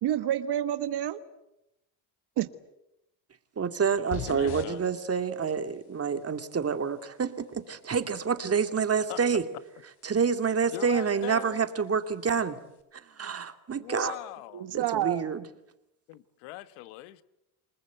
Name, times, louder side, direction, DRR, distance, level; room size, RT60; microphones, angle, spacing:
voice 1, 0.0-1.2 2.4-2.5 14.0-14.1 14.5-15.3, right 11 dB, 60° right, 1.5 m, -28 dB
voice 2, 3.6-9.4 10.0-12.6 13.2-14.1 14.7-15.4, right 6 dB, 30° right, 2.5 m, -28 dB
sound 1, 4.1-12.8, left 8 dB, 50° left, 4.6 m, -48 dB
voice 3, 4.3-4.8 9.1-9.2 10.7-11.6 13.8-14.7 16.1-17.2, left 17 dB, 85° left, 1.5 m, -40 dB
28.5 x 20.5 x 8.2 m
supercardioid pair, 90°, 46 cm